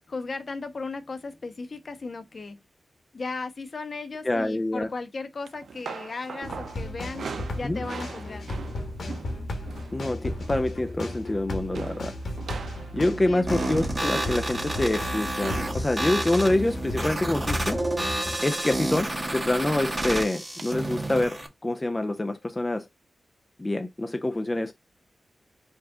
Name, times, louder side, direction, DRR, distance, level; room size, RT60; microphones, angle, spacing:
voice 1, 0.1-2.6 3.1-8.5 13.3-13.6, left 3 dB, 55° left, 0.9 m, -36 dB
voice 2, 4.2-4.9 7.6-7.8 9.9-12.1 12.9-17.8 18.4-22.9 23.6-24.7, left 1 dB, 25° left, 0.5 m, -26 dB
sound 1, 5.4-10.0 10.2-10.6 10.9-11.4 11.7-17.8 18.6-19.0 19.3-19.5 20.6-20.7, right 5 dB, 85° right, 0.5 m, -41 dB
sound 2, 6.4-18.4, left 1 dB, 75° left, 1.4 m, -35 dB
sound 3, 13.5-21.5, right 1 dB, 25° right, 1.3 m, -30 dB
4.7 x 2.5 x 3.6 m
cardioid pair, 70°, 0 cm